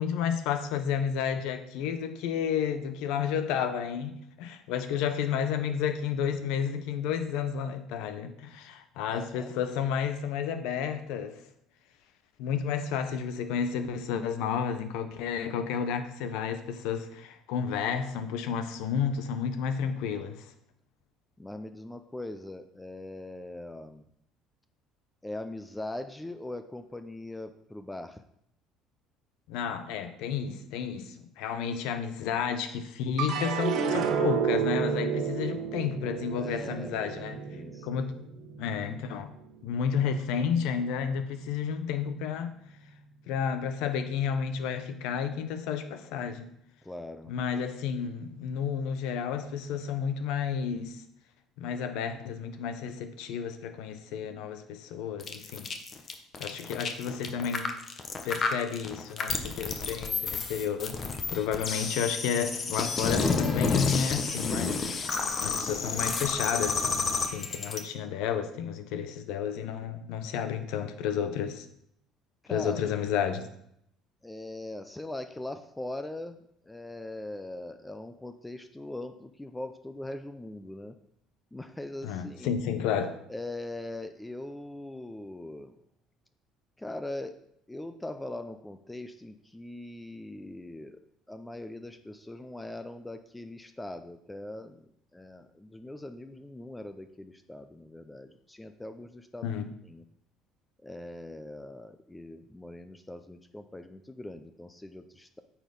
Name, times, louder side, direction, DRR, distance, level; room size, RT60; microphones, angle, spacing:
voice 1, 0.0-11.4 12.4-20.4 29.5-37.4 37.8-38.1 38.6-39.3 39.6-42.5 43.3-46.5 47.3-51.0 51.6-55.7 56.4-57.7 58.2-61.0 61.3-64.8 65.4-71.7 72.5-73.5 82.0-83.2 99.4-99.7, left 7 dB, 75° left, 10 dB, 0.8 m, -31 dB
voice 2, 9.1-9.5 21.4-24.1 25.2-28.2 36.3-37.1 37.5-38.1 46.8-47.3 72.4-72.9 74.2-76.4 76.6-81.0 81.5-82.5 83.3-85.8 86.8-87.4 87.7-91.0 91.3-100.1 100.8-105.4, left 1 dB, 10° left, 8 dB, 0.6 m, -41 dB
sound 1, 33.2-39.6 40.1-40.7, right 7 dB, 70° right, 1.2 m, -31 dB
sound 2, 55.2-67.8, left 4 dB, 40° left, 1.1 m, -30 dB
8.9 x 4.4 x 5.3 m, 0.73 s
supercardioid pair, 90°, 0 cm